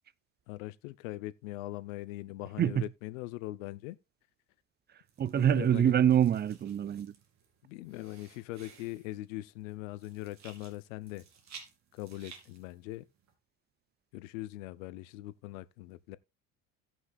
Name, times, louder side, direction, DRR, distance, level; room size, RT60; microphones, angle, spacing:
voice 1, 0.5-4.0 5.4-5.9 7.6-11.2 11.9-13.1 14.1-16.2, left 17 dB, 90° left, 0.7 m, -41 dB
sound 1, 5.0-13.3, right 6 dB, 45° right, 2.7 m, -56 dB
voice 2, 5.2-7.1, right 10 dB, 25° right, 0.6 m, -25 dB
17.0 x 6.1 x 2.4 m
supercardioid pair, 95°, 38 cm